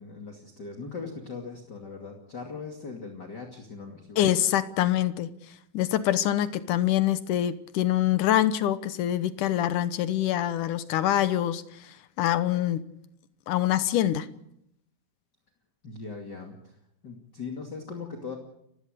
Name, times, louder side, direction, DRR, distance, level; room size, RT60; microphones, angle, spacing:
voice 1, 0.0-4.3 15.8-16.8 17.0-18.4, left 4 dB, 35° left, 2 dB, 2.8 m, -39 dB
voice 2, 4.2-5.3 5.7-12.8 13.5-14.3, left 12 dB, 80° left, 13 dB, 2.5 m, -25 dB
29.5 x 16.0 x 6.6 m, 0.76 s
omnidirectional pair, 3.7 m